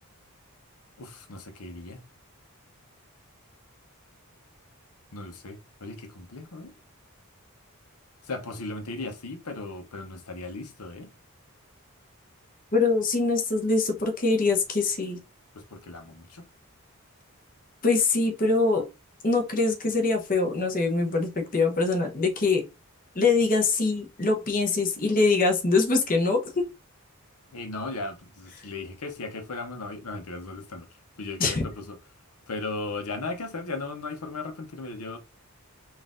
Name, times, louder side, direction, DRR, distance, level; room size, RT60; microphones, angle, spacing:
voice 1, 1.0-2.0 5.1-6.7 8.3-11.1 15.5-16.4 27.5-30.9 31.2-32.0 32.5-35.2, left 3 dB, 85° left, 0.8 m, -36 dB
voice 2, 12.7-15.2 17.8-18.9 19.2-22.6 23.1-26.6 31.4-31.6, left 3 dB, 40° left, 0.9 m, -23 dB
4.0 x 2.6 x 3.7 m
head